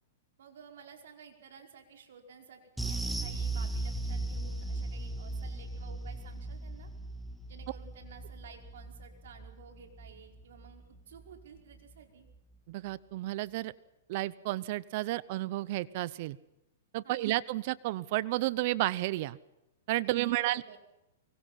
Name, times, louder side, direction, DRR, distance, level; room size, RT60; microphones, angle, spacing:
voice 1, 0.4-6.9 7.5-12.3 17.0-17.3 20.0-20.8, right 6 dB, 75° right, 4 dB, 5.1 m, -53 dB
sound 1, 2.8-11.4 11.7-11.9 12.3-12.4, right 2 dB, ahead, 1.8 m, -38 dB
voice 2, 12.7-13.7 14.1-16.4 16.9-19.4 19.9-20.8, right 17 dB, 50° right, 20 dB, 0.8 m, -32 dB
24.5 x 23.0 x 5.9 m, 0.91 s
hypercardioid pair, 150°, 0 cm